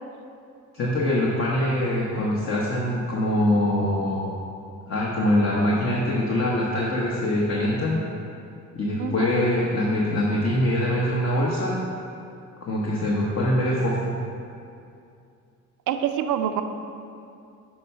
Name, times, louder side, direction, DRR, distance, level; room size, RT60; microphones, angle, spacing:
voice 1, 0.7-4.3 4.9-8.0 8.7-11.8 12.6-14.1, left 1 dB, 45° left, -4 dB, 1.1 m, -23 dB
voice 2, 15.9-16.6, right 9 dB, 80° right, 7 dB, 0.5 m, -26 dB
6.3 x 4.4 x 5.6 m, 2.5 s
cardioid pair, 90°, 30 cm